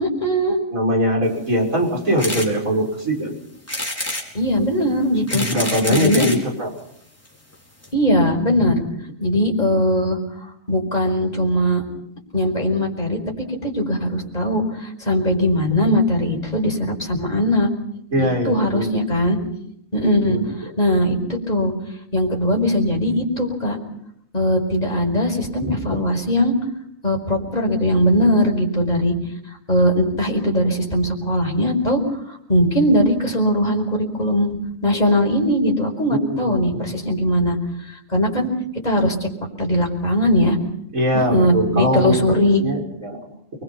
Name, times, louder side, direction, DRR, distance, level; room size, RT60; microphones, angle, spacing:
voice 1, 0.0-0.6 4.3-5.4 5.9-6.3 7.9-8.8 9.2-10.2 10.7-11.8 12.3-13.2 13.6-17.7 18.2-19.4 19.9-20.4 20.8-21.7 22.1-23.8 24.3-26.5 27.0-29.1 29.7-32.0 32.5-34.5 34.8-37.6 38.1-38.5 38.8-39.3 39.6-40.6 41.1-42.6, equal, 30° left, 1 dB, 5.2 m, -20 dB
voice 2, 0.7-3.3 5.1-6.7 18.1-19.0 19.4-19.5 20.3-20.5 25.6-26.0 36.1-36.8 40.9-42.2 42.6-43.2, equal, 85° right, 1 dB, 6.6 m, -22 dB
sound 1, 2.2-2.5 3.0-3.1 3.7-4.3 5.0-6.4 7.3-7.4 7.5-7.6 7.8-7.9, left 1 dB, 10° left, 4.8 m, -27 dB
29.5 x 22.0 x 5.7 m, 0.74 s
omnidirectional pair, 1.4 m